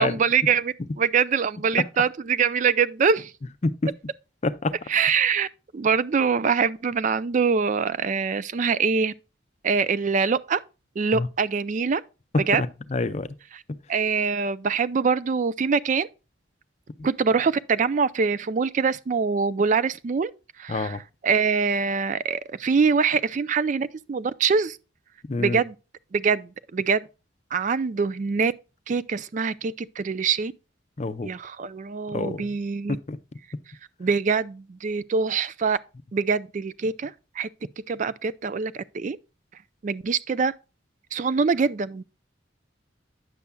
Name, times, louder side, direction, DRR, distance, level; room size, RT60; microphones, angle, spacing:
voice 1, 0.0-3.3 4.9-5.5 5.7-9.1 9.6-10.6 11.0-12.0 12.5-12.6 13.5-13.6 13.9-16.1 17.0-20.3 20.6-21.0 21.2-24.8 25.4-25.7 26.1-27.1 27.5-28.5 28.9-30.5 31.2-33.0 34.0-35.8 36.1-37.5 37.9-39.2 39.8-40.5 41.1-42.0, right 5 dB, 40° right, 0.4 m, -24 dB
voice 2, 4.4-4.8 11.1-11.3 12.3-13.4 20.7-21.0 25.3-25.6 31.0-31.3 32.1-32.5 32.9-33.2, left 3 dB, 35° left, 0.5 m, -27 dB
9.6 x 6.9 x 2.2 m
head